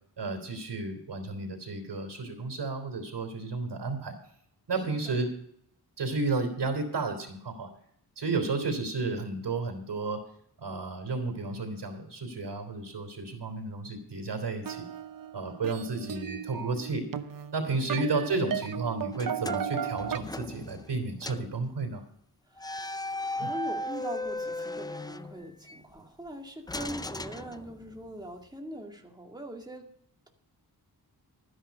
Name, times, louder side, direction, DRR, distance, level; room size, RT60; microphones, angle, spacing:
voice 1, 0.2-4.2 4.7-5.3 6.0-7.7 8.2-10.2 10.6-14.8 15.3-17.0 17.5-22.0 23.4-23.5, right 3 dB, 80° right, 5 dB, 3.2 m, -32 dB
voice 2, 4.9-5.3 17.7-18.0 22.5-23.0 23.4-29.9, equal, 10° right, 2 dB, 2.1 m, -42 dB
sound 1, 14.6-20.2, right 8 dB, 55° right, 0.8 m, -36 dB
sound 2, 19.1-21.0 21.2-21.5 22.6-25.8 26.7-28.1, left 1 dB, 10° left, 0.4 m, -37 dB
13.0 x 10.0 x 5.2 m, 0.68 s
wide cardioid pair, 95°, 41 cm